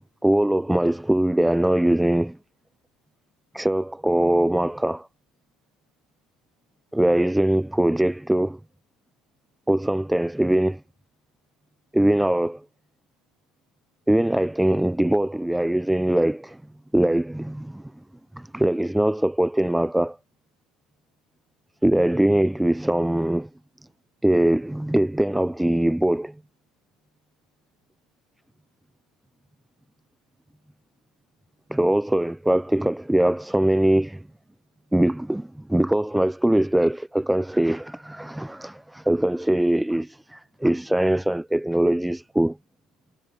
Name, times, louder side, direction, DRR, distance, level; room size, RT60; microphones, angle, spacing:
voice 1, 0.0-2.4 3.5-5.1 6.9-8.6 9.7-10.8 11.9-12.6 14.1-16.6 16.9-17.8 18.3-20.2 21.8-23.5 24.2-26.3 31.7-34.2 34.9-42.6, right 1 dB, 5° right, 0.4 m, -22 dB
cardioid pair, 125°, 0 cm